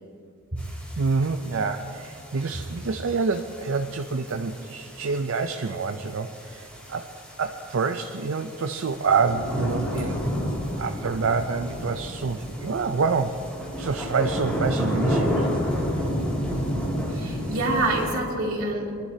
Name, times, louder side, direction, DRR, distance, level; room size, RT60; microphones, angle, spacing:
sound 1, 0.6-18.1, equal, 5° left, 2.5 m, -31 dB
voice 1, 1.0-7.1 7.4-10.2 10.8-13.4 13.8-15.5, right 4 dB, 65° right, 6 dB, 0.5 m, -27 dB
voice 2, 17.1-18.9, right 2 dB, 85° right, -3 dB, 2.8 m, -26 dB
26.5 x 11.5 x 2.8 m, 2.5 s
head